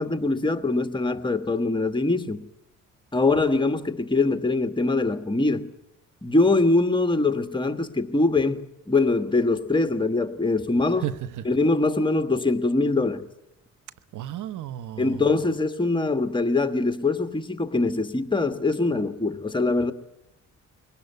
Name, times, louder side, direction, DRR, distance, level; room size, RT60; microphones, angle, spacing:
voice 1, 0.0-2.5 3.1-5.7 6.2-11.1 11.4-13.3 15.0-19.9, left 3 dB, 15° left, 1.5 m, -23 dB
voice 2, 11.0-11.4 14.1-15.2 17.8-17.9, right 12 dB, 80° right, 1.0 m, -33 dB
22.0 x 19.0 x 8.1 m
cardioid pair, 90°, 30 cm